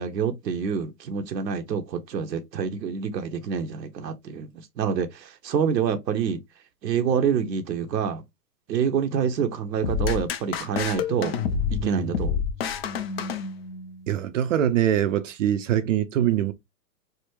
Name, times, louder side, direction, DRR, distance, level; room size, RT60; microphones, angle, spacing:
voice 1, 0.0-4.5 4.8-6.4 6.8-8.2 8.7-11.4 11.8-12.4, right 7 dB, 85° right, 0.8 m, -27 dB
sound 1, 9.8-14.0, left 7 dB, 40° left, 0.4 m, -28 dB
voice 2, 11.8-12.1 14.1-16.5, right 11 dB, 50° right, 0.5 m, -23 dB
3.4 x 2.1 x 3.0 m
hypercardioid pair, 130°, 49 cm